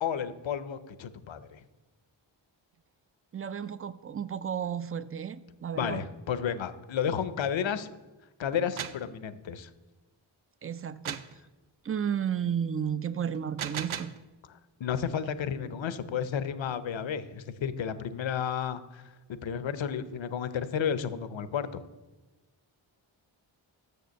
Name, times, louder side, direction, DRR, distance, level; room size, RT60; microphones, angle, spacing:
voice 1, 0.0-1.6 5.8-7.9 8.4-9.7 14.8-19.0 19.3-21.8, left 8 dB, 65° left, 13 dB, 0.7 m, -32 dB
voice 2, 3.3-6.0 10.6-11.2 11.8-14.2, right 8 dB, 30° right, 15 dB, 0.4 m, -33 dB
sound 1, 8.5-9.1 11.0-11.4 13.3-14.2, right 9 dB, 75° right, 0.6 m, -36 dB
6.7 x 6.6 x 6.4 m, 1.1 s
cardioid pair, 45°, 49 cm